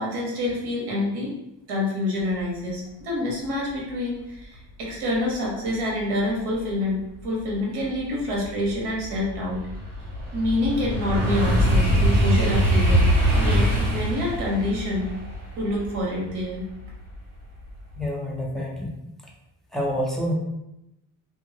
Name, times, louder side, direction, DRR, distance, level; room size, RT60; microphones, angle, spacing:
voice 1, 0.0-1.3 1.7-7.0 7.2-9.6 10.3-13.1 13.3-15.1 15.6-16.6, left 1 dB, 70° right, -3 dB, 1.3 m, -27 dB
sound 1, 7.5-7.6 8.1-17.2 17.6-18.0, equal, 50° right, 1.2 m, -23 dB
voice 2, 18.0-19.0 19.2-19.3 19.7-20.3, equal, ahead, -3 dB, 0.5 m, -28 dB
2.7 x 2.4 x 2.8 m, 0.88 s
cardioid pair, 115°, 42 cm